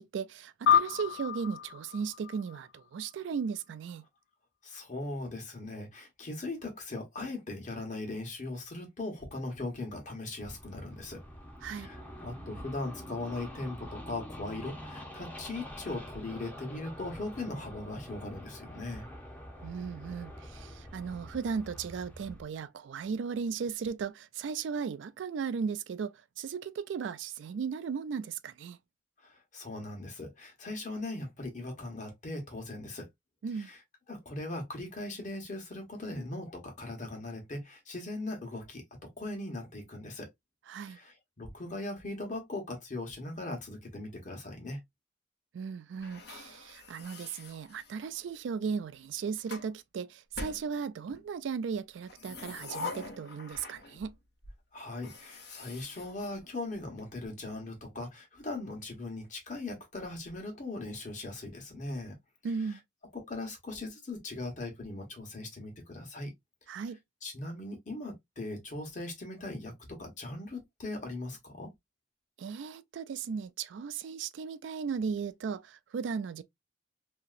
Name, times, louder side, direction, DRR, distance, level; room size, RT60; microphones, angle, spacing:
voice 1, 0.0-4.0 11.6-11.9 19.6-28.8 33.4-33.7 40.7-41.0 45.5-54.2 62.4-62.8 66.7-67.0 72.4-76.4, right 6 dB, 80° right, 0.3 m, -36 dB
Sub - Sub High, 0.7-3.4, left 9 dB, 85° left, 0.4 m, -29 dB
voice 2, 4.6-11.2 11.6-19.1 29.2-33.1 33.6-33.8 34.1-40.3 40.8-44.8 54.7-62.2 63.1-66.3 66.7-66.8 67.2-71.7, left 2 dB, 45° left, 1.2 m, -39 dB
sound 1, 10.4-22.4, equal, 10° left, 0.7 m, -46 dB
sound 2, 46.0-48.3 49.0-49.7 50.3-51.3 52.0-54.1 54.4-54.5 54.9-57.0, left 3 dB, 60° left, 0.9 m, -44 dB
2.8 x 2.8 x 2.4 m
head